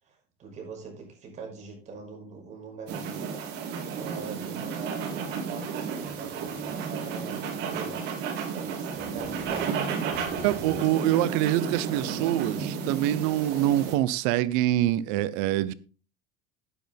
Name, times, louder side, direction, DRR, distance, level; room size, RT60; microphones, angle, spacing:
voice 1, 0.0-3.4 4.0-8.0 8.5-9.7 10.2-11.1 11.8-12.5, right 4 dB, 35° right, 5.8 m, -43 dB
sound 1, 2.9-14.0, right 6 dB, 55° right, 4.2 m, -33 dB
voice 2, 10.4-15.7, right 14 dB, 85° right, 1.0 m, -25 dB
12.0 x 9.9 x 3.6 m
cardioid pair, 155°, 20 cm